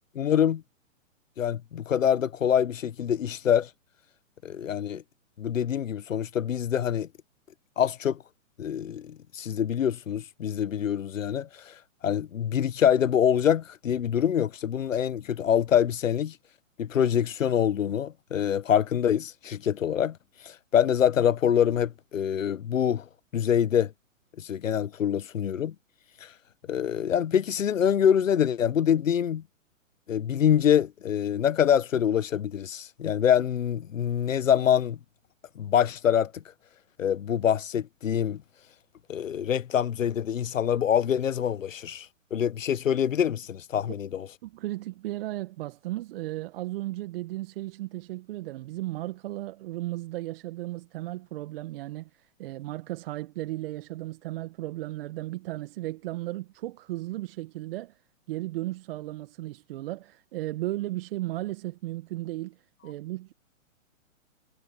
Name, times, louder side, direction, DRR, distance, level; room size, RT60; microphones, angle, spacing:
voice 1, 0.1-0.6 1.4-3.7 4.4-5.0 5.4-7.1 7.8-8.2 8.6-11.7 12.0-16.4 16.8-20.2 20.4-23.0 23.3-23.9 24.4-25.7 26.2-26.3 26.7-29.4 30.1-35.0 35.5-36.4 37.0-38.4 39.1-44.3, left 9 dB, 70° left, 1.4 m, -25 dB
voice 2, 44.4-57.9 58.3-63.3, right 17 dB, 45° right, 1.7 m, -35 dB
hypercardioid pair, 125°, 40 cm